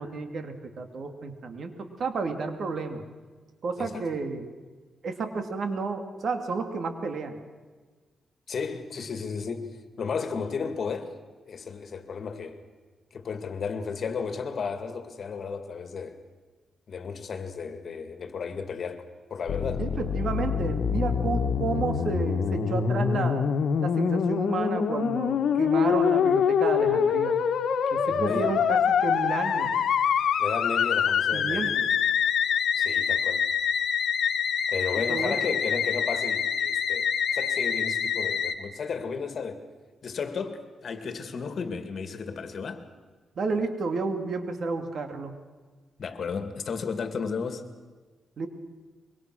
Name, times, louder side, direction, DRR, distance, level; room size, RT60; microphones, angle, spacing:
voice 1, 0.0-3.0 3.6-4.5 5.0-7.4 19.8-23.5 23.8-27.4 27.9-29.7 31.3-31.9 35.1-35.3 43.4-45.3 48.4-48.5, right 4 dB, 60° right, 2.5 m, -31 dB
voice 2, 8.5-11.1 11.5-12.6 13.1-16.2 16.9-19.0 19.3-19.9 28.1-28.6 30.4-31.8 32.7-33.5 34.7-39.6 40.0-42.8 46.0-47.7, left 5 dB, 55° left, 2.3 m, -33 dB
Musical instrument, 19.5-38.5, left 7 dB, 75° left, 1.5 m, -25 dB
24.5 x 23.0 x 6.3 m
cardioid pair, 95°, 0 cm